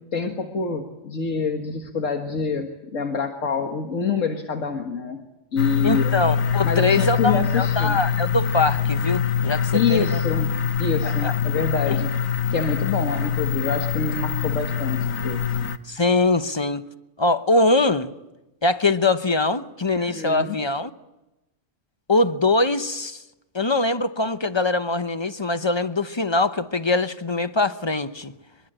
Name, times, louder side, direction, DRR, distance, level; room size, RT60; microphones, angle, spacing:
voice 1, 0.1-5.2 5.5-6.1 6.6-8.0 9.7-10.5 10.8-12.1 12.5-15.4 20.0-20.6, left 5 dB, 70° left, 2.0 m, -26 dB
sound 1, 5.6-15.8, left 7 dB, 90° left, 1.6 m, -24 dB
voice 2, 5.8-10.2 11.0-11.3 11.9-12.0 15.9-16.8 17.2-18.1 18.6-20.9 22.1-23.2 23.5-28.3, left 2 dB, 25° left, 0.8 m, -22 dB
23.5 x 23.0 x 8.9 m
omnidirectional pair, 1.4 m